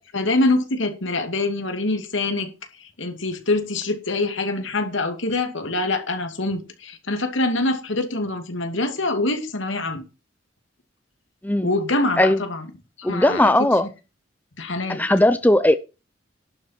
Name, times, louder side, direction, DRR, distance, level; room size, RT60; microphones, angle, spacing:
voice 1, 0.1-2.5 2.8-10.1 11.6-12.6 13.0-13.5 14.6-15.0, left 2 dB, 80° left, 2.5 m, -24 dB
voice 2, 13.0-13.9 14.9-15.7, left 1 dB, 10° left, 0.6 m, -18 dB
11.5 x 7.5 x 5.8 m
head